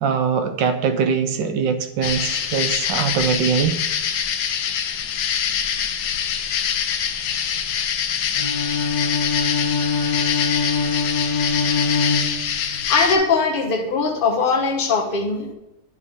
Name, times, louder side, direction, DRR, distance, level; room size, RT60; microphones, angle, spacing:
voice 1, 0.0-3.8, right 6 dB, 75° right, 8 dB, 1.2 m, -22 dB
sound 1, 2.0-13.2, left 8 dB, 70° left, 1.2 m, -24 dB
Bowed string instrument, 8.3-12.9, left 4 dB, 5° left, 1.0 m, -23 dB
voice 2, 12.9-15.5, left 4 dB, 40° left, 2 dB, 0.7 m, -20 dB
10.5 x 4.8 x 3.7 m, 0.93 s
omnidirectional pair, 2.1 m